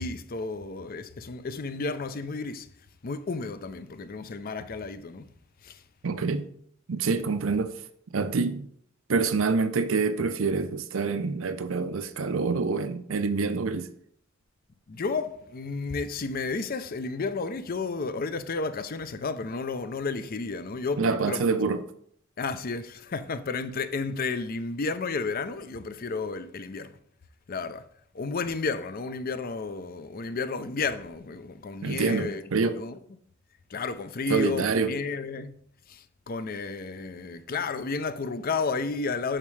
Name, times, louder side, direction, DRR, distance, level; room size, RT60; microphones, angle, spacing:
voice 1, 0.0-2.7 3.0-5.3 5.6-5.8 14.9-21.4 22.4-27.0 27.5-27.9 28.1-32.4 32.7-33.0 33.7-35.6 35.9-39.4, left 4 dB, 45° left, 0.5 m, -32 dB
voice 2, 6.0-6.5 6.9-7.7 8.1-8.7 9.1-13.9 21.0-21.8 31.8-32.8 34.3-34.9, right 4 dB, 75° right, 0.6 m, -26 dB
8.8 x 6.1 x 3.3 m
head